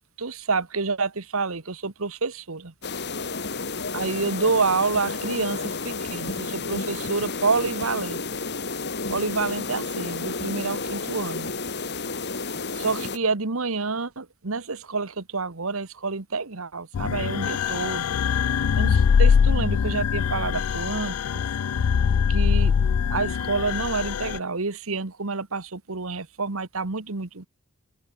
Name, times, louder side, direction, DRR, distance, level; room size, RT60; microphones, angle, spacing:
voice 1, 0.2-2.7 3.9-8.2 9.1-11.5 12.7-18.1 18.8-21.4 22.3-22.7 23.1-27.5, right 4 dB, 70° right, 1.4 m, -28 dB
sound 1, 2.8-13.2, left 3 dB, 55° left, 4.8 m, -31 dB
sound 2, 16.9-24.4, left 6 dB, 85° left, 0.4 m, -22 dB
open air
head